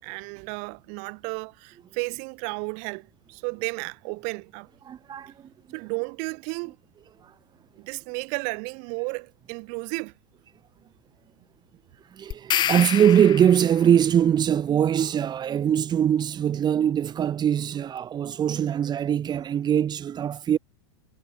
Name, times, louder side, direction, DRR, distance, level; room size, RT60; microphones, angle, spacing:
voice 1, 0.0-4.7 5.7-6.8 7.8-10.1, right 40 dB or more, 50° right, 4.9 m, -33 dB
voice 2, 4.9-5.5 7.2-7.3 12.1-20.6, right 9 dB, 30° right, 7.2 m, -22 dB
sound 1, 12.3-13.9, left 11 dB, 30° left, 1.4 m, -28 dB
hypercardioid pair, 100°, 15 cm